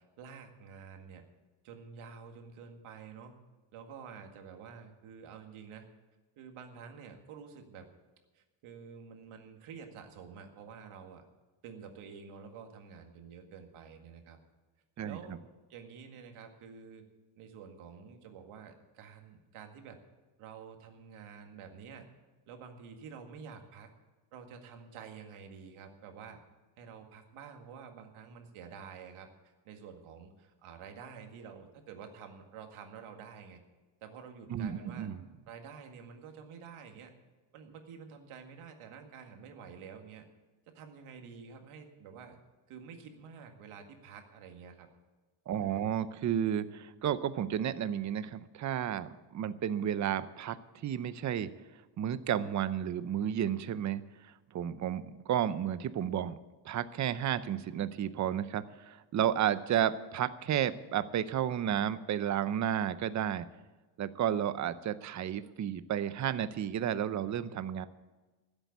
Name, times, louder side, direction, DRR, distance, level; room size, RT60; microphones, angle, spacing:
voice 1, 0.2-1.2 1.6-3.3 3.7-5.9 6.4-7.9 8.3-11.2 11.6-14.4 15.0-15.4 15.7-17.0 17.4-20.0 20.4-22.1 22.5-23.9 24.3-26.4 26.8-33.6 34.0-35.1 35.5-37.1 37.5-40.2 40.7-42.4 42.7-44.9 45.6-45.9, right 6 dB, 90° right, 4 dB, 2.0 m, -49 dB
voice 2, 15.0-15.4 34.5-35.2 45.5-50.6 50.8-51.5 52.0-56.4 56.6-63.5 64.0-67.9, right 10 dB, 35° right, 14 dB, 0.6 m, -32 dB
14.5 x 8.1 x 8.4 m, 1.2 s
cardioid pair, 155°, 49 cm